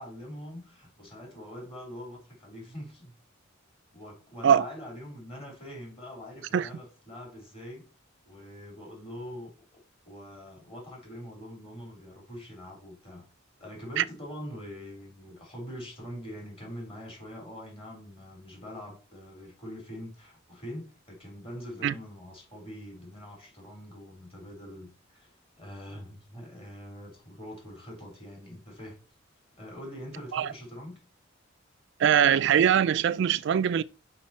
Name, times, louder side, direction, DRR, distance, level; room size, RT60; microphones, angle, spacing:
voice 1, 0.0-3.1 3.9-7.8 8.2-9.8 10.1-13.2 13.6-29.0 29.6-31.0, equal, 30° left, 3.8 m, -43 dB
voice 2, 32.0-33.8, right 8 dB, 60° right, 0.3 m, -22 dB
5.8 x 5.2 x 4.3 m
head